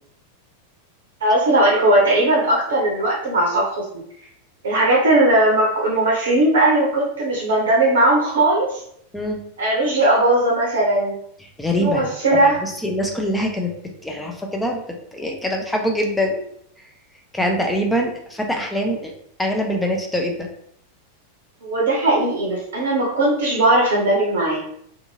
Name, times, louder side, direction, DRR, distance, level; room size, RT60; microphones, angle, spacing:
voice 1, 1.2-3.8 4.6-8.8 9.6-11.2 11.8-12.6 21.6-24.6, right 1 dB, 60° right, -3 dB, 0.6 m, -18 dB
voice 2, 11.6-13.7 14.0-14.8 15.1-16.5 17.3-19.1 19.4-20.5, equal, 5° left, 1 dB, 0.5 m, -24 dB
2.6 x 2.5 x 2.7 m, 0.69 s
figure-of-eight pair, 90°, 0 cm